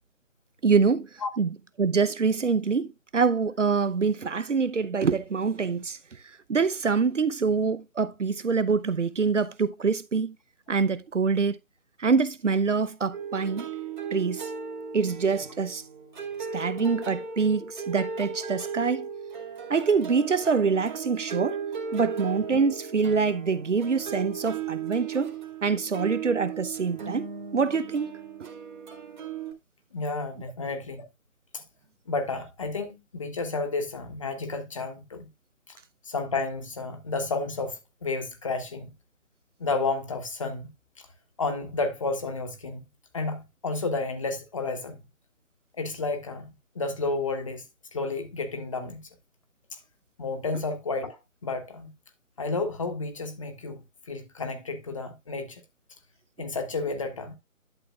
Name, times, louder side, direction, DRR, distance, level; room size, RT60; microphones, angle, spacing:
voice 1, 0.6-1.1 1.4-6.0 6.5-10.3 10.7-11.6 12.0-13.7 14.1-14.5 14.9-15.8 16.5-19.1 19.7-21.6 21.9-25.3 25.6-27.3 27.5-28.1 28.4-28.5, right 5 dB, 60° right, 0.8 m, -25 dB
sound 1, 13.1-29.5, right 6 dB, 35° right, 2.0 m, -36 dB
voice 2, 29.9-31.0 31.5-31.6 32.1-35.3 36.0-38.9 39.6-40.7 41.4-42.8 43.1-45.0 45.8-47.6 47.9-49.0 49.7-49.8 50.2-51.9 52.4-55.6 56.4-57.3, left 3 dB, 25° left, 1.3 m, -31 dB
11.5 x 7.4 x 2.4 m
figure-of-eight pair, 160°, 41 cm